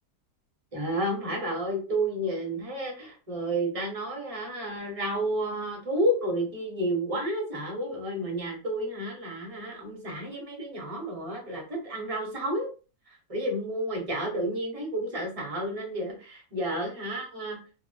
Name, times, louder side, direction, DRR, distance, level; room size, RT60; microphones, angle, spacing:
voice 1, 0.7-12.7 13.1-17.6, right 1 dB, 35° right, -1 dB, 0.5 m, -31 dB
2.8 x 2.0 x 2.2 m, 0.35 s
omnidirectional pair, 1.8 m